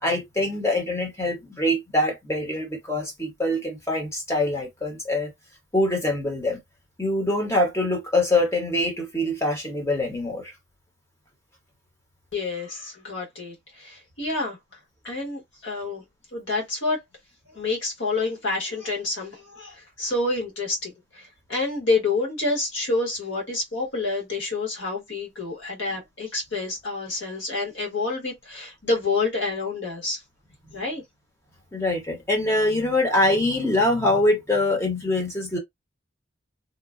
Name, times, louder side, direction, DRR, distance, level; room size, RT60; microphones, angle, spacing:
voice 1, 0.0-5.3 5.7-6.6 7.0-10.5 31.7-35.6, left 1 dB, 15° left, 0.9 m, -24 dB
voice 2, 12.3-14.6 15.0-16.0 16.3-17.0 17.5-30.2 30.7-31.0, left 3 dB, 80° left, 1.4 m, -28 dB
2.9 x 2.2 x 2.4 m
head